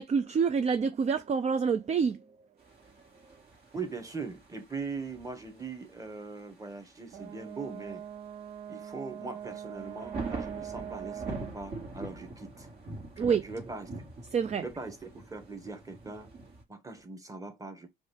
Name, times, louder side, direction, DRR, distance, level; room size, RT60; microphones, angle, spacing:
voice 1, 0.0-2.2 13.2-13.4 14.3-14.6, right 6 dB, 35° right, 0.4 m, -27 dB
sound 1, 2.6-16.6, right 3 dB, 50° right, 2.0 m, -44 dB
voice 2, 3.7-8.0 8.7-12.7 13.2-13.9 14.6-16.3 16.7-17.9, right 4 dB, 15° right, 1.3 m, -40 dB
Brass instrument, 7.1-11.6, right 9 dB, 85° right, 0.7 m, -42 dB
4.9 x 2.6 x 3.4 m
cardioid pair, 90°, 20 cm